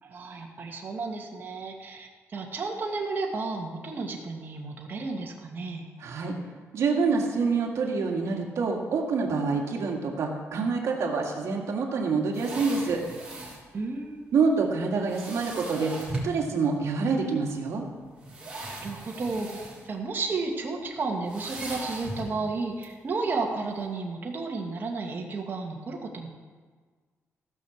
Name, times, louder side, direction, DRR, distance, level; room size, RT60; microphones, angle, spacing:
voice 1, 0.0-5.9 13.7-14.2 18.7-26.3, right 3 dB, 40° right, 0 dB, 1.7 m, -32 dB
voice 2, 6.0-6.4 6.7-13.0 14.3-15.9 16.2-17.8, right 4 dB, 65° right, 0 dB, 2.0 m, -26 dB
sound 1, 12.3-13.6 15.1-16.4 17.3-17.4 18.2-19.9 20.2-20.4 21.3-22.4 22.8-22.9, right 2 dB, 15° right, 3.9 m, -38 dB
15.5 x 6.3 x 7.1 m, 1.5 s
cardioid pair, 135°, 5 cm